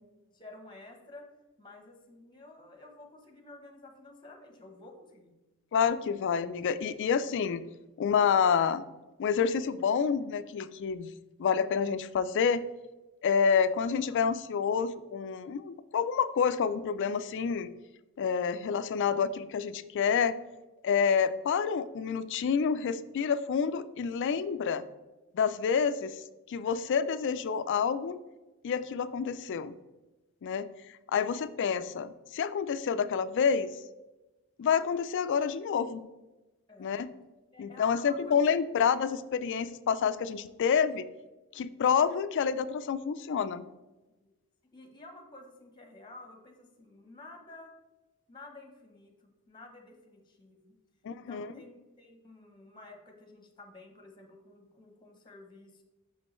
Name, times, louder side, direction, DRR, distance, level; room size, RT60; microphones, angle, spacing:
voice 1, 0.3-1.3 1.6-5.3 36.7-37.0 37.5-38.3 38.8-39.0 44.2-44.3 44.6-47.7 48.3-50.8 51.1-55.8, left 2 dB, 20° left, 3 dB, 0.9 m, -51 dB
voice 2, 5.7-7.6 8.0-8.8 9.2-11.1 11.4-12.6 13.2-17.7 18.2-20.3 20.8-24.8 25.3-28.2 28.6-29.8 30.4-30.7 31.1-33.7 34.6-36.0 36.8-37.1 37.6-41.1 41.5-43.7 51.0-51.5, left 6 dB, 55° left, 14 dB, 0.3 m, -28 dB
6.1 x 5.3 x 3.0 m, 1.1 s
head